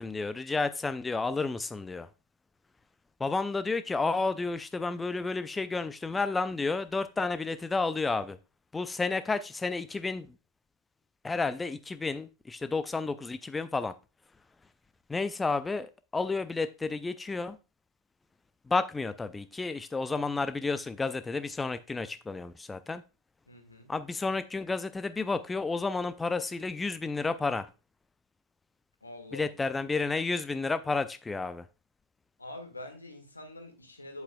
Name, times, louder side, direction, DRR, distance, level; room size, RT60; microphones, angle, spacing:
voice 1, 0.0-2.1 3.2-8.4 8.7-10.3 11.2-13.9 15.1-17.6 18.7-23.0 23.9-27.7 29.3-31.7, left 3 dB, 10° left, 0.5 m, -31 dB
voice 2, 23.5-23.9 29.0-29.5 32.4-34.2, left 1 dB, 80° left, 1.8 m, -45 dB
8.5 x 8.0 x 2.3 m
figure-of-eight pair, 90°, 0 cm